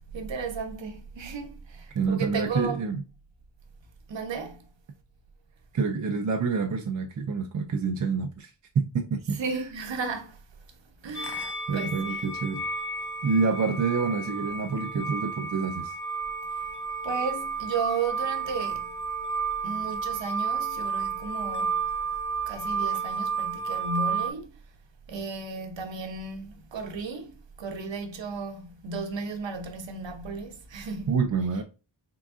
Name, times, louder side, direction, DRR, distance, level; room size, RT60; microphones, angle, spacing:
voice 1, 0.1-2.8 4.1-4.6 9.3-10.4 11.0-12.2 17.0-18.9 19.6-21.8 22.5-24.5 25.1-31.1, right 4 dB, 70° right, 0.8 m, -34 dB
voice 2, 2.0-3.0 5.7-8.5 8.8-9.4 11.7-12.6 13.2-15.9 31.1-31.6, right 5 dB, 40° right, 0.5 m, -27 dB
sound 1, 11.1-24.3, right 5 dB, 55° left, 0.7 m, -31 dB
3.8 x 3.5 x 2.4 m
wide cardioid pair, 70°, 47 cm